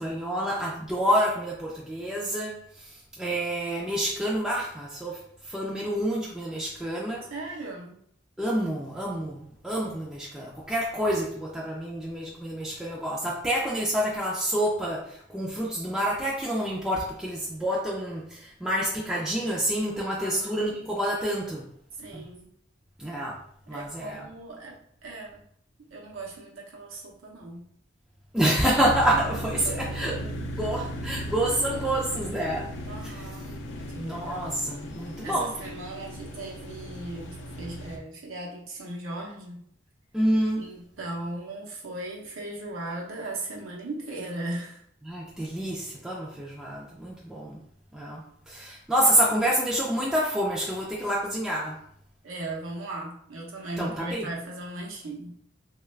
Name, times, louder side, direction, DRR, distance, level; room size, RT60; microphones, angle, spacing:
voice 1, 0.0-7.2 8.4-21.7 22.1-22.3 23.0-23.4 23.7-24.3 28.3-32.7 33.0-33.3 34.0-35.6 40.1-40.7 45.1-47.6 47.9-51.8 53.8-54.3, right 1 dB, 5° right, -5 dB, 0.4 m, -28 dB
voice 2, 7.3-8.0 20.2-20.7 22.0-22.5 23.7-25.4 25.9-27.7 29.6-30.1 32.8-34.5 35.2-39.7 40.6-44.8 51.0-51.1 52.2-55.4, right 2 dB, 80° right, -2 dB, 0.8 m, -38 dB
sound 1, 28.8-38.0, equal, 60° left, 0.5 m, -37 dB
3.0 x 2.3 x 3.1 m, 0.67 s
head